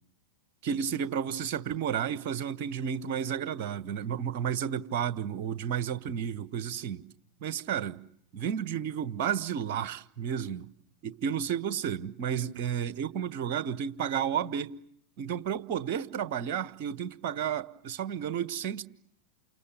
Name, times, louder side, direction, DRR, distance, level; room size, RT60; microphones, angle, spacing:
voice 1, 0.6-7.0 7.4-8.0 8.3-10.7 11.0-14.7 15.2-18.8, right 8 dB, 45° right, 1.3 m, -32 dB
29.5 x 29.0 x 7.0 m
figure-of-eight pair, 90°, 0 cm